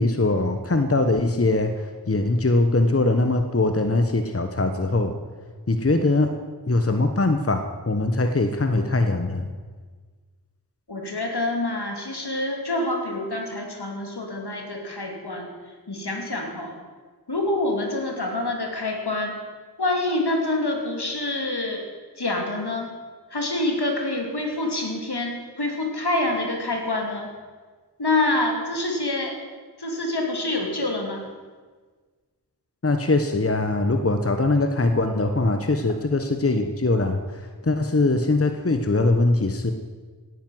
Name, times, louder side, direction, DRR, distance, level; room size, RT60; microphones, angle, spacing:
voice 1, 0.0-5.1 5.7-6.3 6.7-9.5 32.8-39.7, left 2 dB, 35° left, 7 dB, 1.1 m, -22 dB
voice 2, 10.9-15.5 15.9-16.8 17.3-19.3 19.8-21.8 22.2-22.9 23.3-27.3 28.0-29.4 29.8-31.3, left 2 dB, 75° left, 2 dB, 2.9 m, -26 dB
17.5 x 9.3 x 7.8 m, 1.5 s
wide cardioid pair, 45°, 39 cm